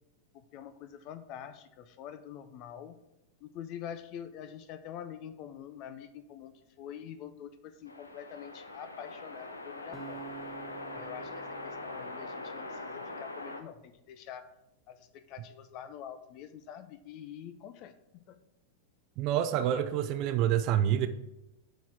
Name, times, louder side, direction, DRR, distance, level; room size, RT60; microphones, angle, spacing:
voice 1, 0.3-3.0 3.4-10.2 10.9-14.5 14.9-17.9 18.3-18.4, left 9 dB, 45° left, 11 dB, 0.5 m, -46 dB
sound 1, 7.9-13.6, left 2 dB, 85° left, 0.7 m, -42 dB
sound 2, 9.9-13.1, right 8 dB, 15° right, 1.0 m, -49 dB
voice 2, 19.2-21.1, right 10 dB, 45° right, 10 dB, 0.5 m, -27 dB
8.0 x 4.3 x 4.7 m, 0.91 s
figure-of-eight pair, 95°, 0 cm